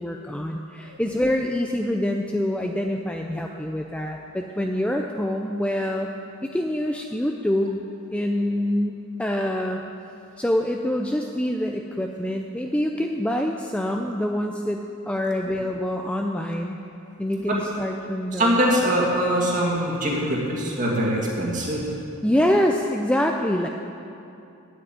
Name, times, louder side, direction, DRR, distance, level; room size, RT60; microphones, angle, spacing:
voice 1, 0.0-6.1 6.4-7.8 8.1-9.8 10.4-16.8 17.2-18.6 22.2-23.7, left 1 dB, 5° left, 2 dB, 0.4 m, -25 dB
voice 2, 18.3-21.8, right 1 dB, 35° right, -3 dB, 2.2 m, -23 dB
9.2 x 8.2 x 9.0 m, 2.7 s
head